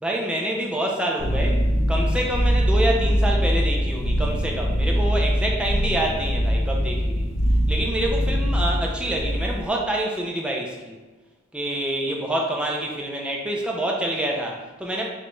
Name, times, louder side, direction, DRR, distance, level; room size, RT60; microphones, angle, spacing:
voice 1, 0.0-1.6 1.9-7.3 7.7-11.0 11.5-15.0, right 1 dB, 5° right, -1 dB, 0.4 m, -27 dB
sound 1, 1.2-9.7, equal, 70° left, 0.7 m, -22 dB
5.1 x 2.3 x 3.1 m, 1.2 s
head